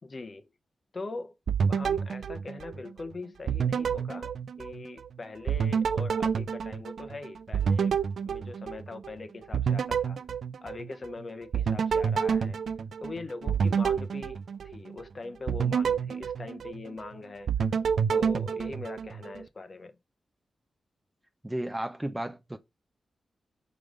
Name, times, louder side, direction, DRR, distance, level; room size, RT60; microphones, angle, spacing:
voice 1, 0.0-0.5 0.9-1.3 1.7-10.2 10.6-12.6 13.0-17.5 18.1-20.0, left 3 dB, 35° left, 0.7 m, -42 dB
sound 1, 1.5-3.1 3.5-5.1 5.5-9.1 9.5-11.1 11.5-15.0 15.5-17.1 17.5-19.4, right 6 dB, 70° right, 0.4 m, -28 dB
voice 2, 21.4-22.6, right 1 dB, 10° right, 0.5 m, -33 dB
4.9 x 3.9 x 5.0 m
wide cardioid pair, 165°, 0 cm